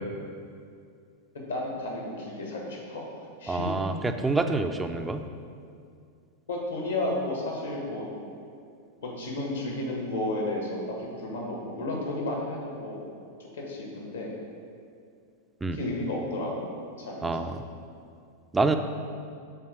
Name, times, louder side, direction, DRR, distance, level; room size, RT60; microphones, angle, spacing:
voice 1, 1.3-3.0 3.4-3.7 4.0-4.4 6.5-8.1 9.0-13.0 13.5-14.3 15.7-16.7 17.0-17.5, left 1 dB, 70° left, -2 dB, 1.8 m, -32 dB
voice 2, 3.5-3.9 4.2-5.2 15.6-15.8 17.2-17.6 18.5-18.8, right 3 dB, 10° right, 7 dB, 0.4 m, -26 dB
5.7 x 4.5 x 6.4 m, 2.3 s
figure-of-eight pair, 90°, 0 cm